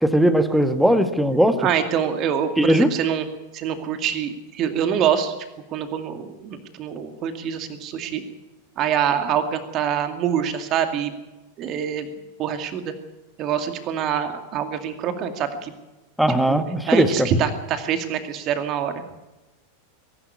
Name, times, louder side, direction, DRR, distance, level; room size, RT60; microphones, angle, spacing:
voice 1, 0.0-1.7 2.6-2.9 16.2-17.3, equal, ahead, 11 dB, 1.6 m, -18 dB
voice 2, 1.6-3.3 3.5-5.3 5.7-8.2 8.8-11.1 11.6-12.1 12.4-12.9 13.4-15.7 16.5-16.6 16.9-18.9, right 8 dB, 35° right, 8 dB, 2.3 m, -25 dB
22.5 x 11.5 x 9.8 m, 1.0 s
figure-of-eight pair, 90°, 0 cm